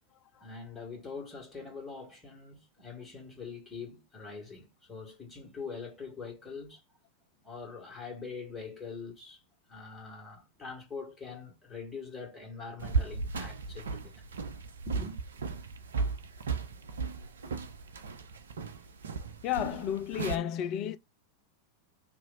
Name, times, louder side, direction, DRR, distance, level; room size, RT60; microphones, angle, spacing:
voice 1, 0.3-6.8 7.4-9.4 9.7-14.3 14.9-15.2, left 4 dB, 10° left, 1.8 m, -43 dB
sound 1, 12.8-20.4, right 4 dB, 65° right, 0.5 m, -35 dB
voice 2, 19.4-21.0, left 10 dB, 40° left, 0.3 m, -32 dB
2.9 x 2.4 x 4.0 m
figure-of-eight pair, 90°, 0 cm